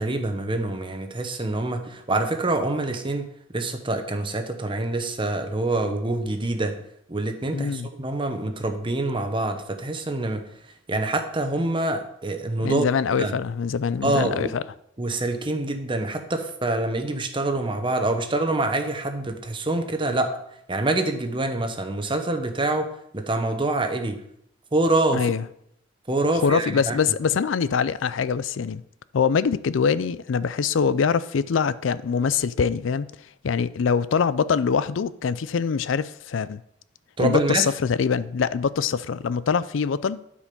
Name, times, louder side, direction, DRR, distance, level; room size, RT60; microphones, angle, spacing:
voice 1, 0.0-3.3 3.5-6.7 7.1-10.4 10.9-12.9 13.2-13.3 14.0-14.5 15.0-20.3 20.7-22.9 23.1-24.2 24.7-25.2 26.1-27.1 37.2-37.7, right 2 dB, 25° right, 1.1 m, -25 dB
voice 2, 7.5-7.9 12.6-14.6 25.1-25.4 26.4-28.8 29.1-33.1 33.4-36.6 37.2-40.2, left 6 dB, 80° left, 0.4 m, -24 dB
12.0 x 5.1 x 5.3 m
head